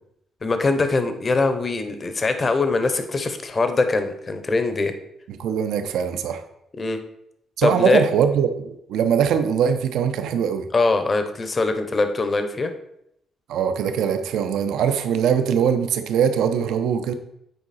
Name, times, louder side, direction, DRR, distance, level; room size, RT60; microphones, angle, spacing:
voice 1, 0.4-5.0 6.8-7.0 7.6-8.0 10.7-12.7, left 3 dB, 25° left, 8 dB, 0.7 m, -22 dB
voice 2, 5.4-6.4 7.6-10.7 13.5-17.1, right 7 dB, 90° right, 8 dB, 0.7 m, -22 dB
9.2 x 4.8 x 4.1 m, 0.79 s
cardioid pair, 160°, 0 cm